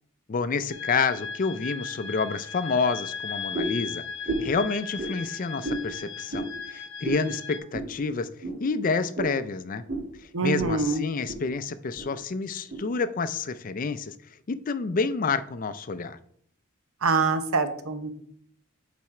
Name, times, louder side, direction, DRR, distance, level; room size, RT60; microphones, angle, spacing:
voice 1, 0.3-4.0 4.4-8.3 8.6-9.8 10.4-14.1 14.5-16.2, left 4 dB, 40° left, 13 dB, 0.4 m, -28 dB
sound 1, 0.7-7.6, left 6 dB, 80° left, 0.8 m, -37 dB
sound 2, 3.5-3.8 4.2-4.6 5.0-5.1 5.6-5.8 6.3-6.5 7.0-7.2 7.7-7.9 8.4-8.6 9.1-9.4 9.9-10.1 10.6-10.8 11.1-11.4 11.9-12.1 12.7-12.8, right 2 dB, 45° right, 2.4 m, -31 dB
voice 2, 10.3-11.0 17.0-18.1, right 4 dB, 85° right, 9 dB, 0.8 m, -25 dB
7.5 x 4.2 x 4.8 m, 0.64 s
head